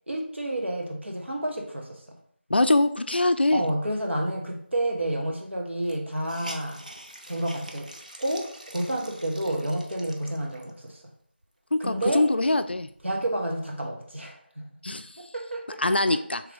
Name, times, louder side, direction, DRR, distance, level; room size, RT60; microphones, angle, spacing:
voice 1, 0.1-2.0 3.5-6.8 7.3-7.9 8.2-11.0 11.8-12.3 13.0-14.7 15.2-16.2, right 1 dB, 85° right, 1 dB, 1.1 m, -30 dB
voice 2, 2.5-3.6 11.7-12.9 14.8-15.1 15.8-16.4, left 2 dB, 65° left, 9 dB, 0.4 m, -23 dB
Hiss, 5.0-5.1 5.3-5.4 5.8-10.9 11.4-11.5 11.9-13.3, right 1 dB, 40° right, 0.5 m, -45 dB
3.7 x 3.2 x 3.3 m, 0.64 s
figure-of-eight pair, 175°, 6 cm